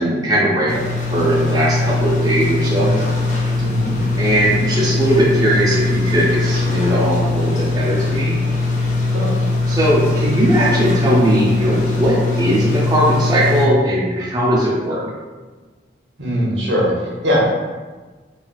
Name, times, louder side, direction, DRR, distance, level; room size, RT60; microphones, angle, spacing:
voice 1, 0.0-2.9 4.2-8.3 9.7-15.0, right 1 dB, 20° right, -6 dB, 0.4 m, -18 dB
sound 1, 0.7-13.7, left 3 dB, 45° left, 0.4 m, -20 dB
voice 2, 3.6-4.0 9.1-9.3 16.2-17.4, equal, 85° right, -5 dB, 0.9 m, -20 dB
3.8 x 2.3 x 2.3 m, 1.3 s
head